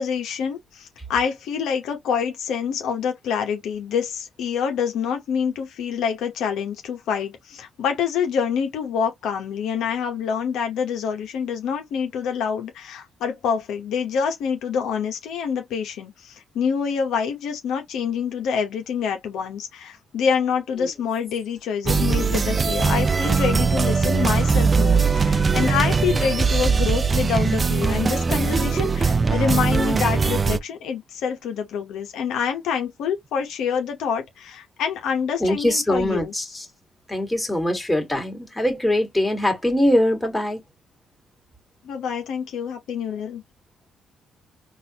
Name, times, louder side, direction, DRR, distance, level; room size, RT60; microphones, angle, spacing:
voice 1, 0.0-36.3 41.8-43.4, left 7 dB, 85° left, 0.9 m, -26 dB
sound 1, 21.8-30.6, right 5 dB, 30° right, 0.4 m, -20 dB
voice 2, 35.4-36.7 37.1-40.6, left 1 dB, 10° left, 1.8 m, -22 dB
4.0 x 2.6 x 2.8 m
cardioid pair, 90°, 0 cm